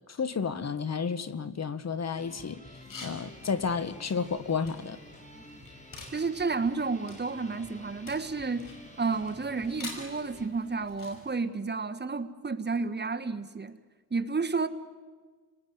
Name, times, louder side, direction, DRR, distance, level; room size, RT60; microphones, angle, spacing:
voice 1, 0.2-2.6 3.0-5.0, left 5 dB, 55° left, 1.3 m, -31 dB
sound 1, 2.2-10.5, left 1 dB, 20° left, 5.0 m, -50 dB
sound 2, 2.7-11.3, left 3 dB, 85° left, 5.7 m, -49 dB
voice 2, 6.1-8.7 9.0-13.8 14.1-14.7, right 4 dB, 30° right, 1.5 m, -31 dB
29.5 x 19.5 x 9.5 m
cardioid pair, 75°, 32 cm